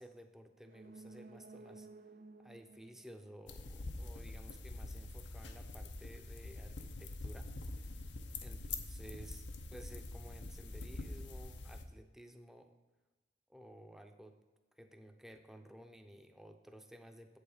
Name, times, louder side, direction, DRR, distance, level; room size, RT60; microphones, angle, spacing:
voice 1, 0.0-1.9 2.4-7.8 8.4-12.7 13.5-14.4 14.8-17.4, equal, ahead, 5 dB, 0.6 m, -55 dB
sound 1, 0.6-4.3 4.6-4.7, right 3 dB, 50° right, 0.4 m, -56 dB
sound 2, 3.5-11.8, left 2 dB, 85° left, 0.8 m, -45 dB
8.1 x 7.1 x 5.0 m, 1.2 s
head